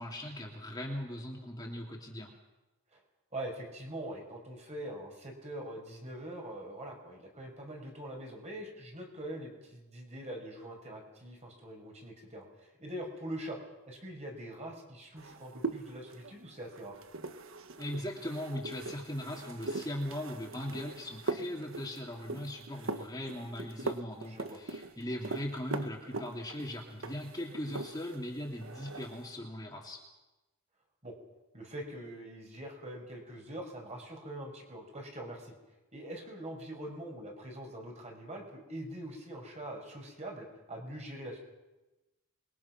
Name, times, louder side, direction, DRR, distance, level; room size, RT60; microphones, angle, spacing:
voice 1, 0.0-2.3 17.8-30.0, left 1 dB, 20° left, -1 dB, 3.0 m, -39 dB
voice 2, 3.3-13.6 13.9-17.0 23.8-23.9 24.2-24.6 31.0-31.2 31.5-35.5 35.9-41.4, right 1 dB, 30° right, 1 dB, 5.5 m, -43 dB
sound 1, 15.2-28.3 28.5-29.2, right 3 dB, 65° right, 1.3 m, -41 dB
27.5 x 22.5 x 6.0 m, 1.1 s
head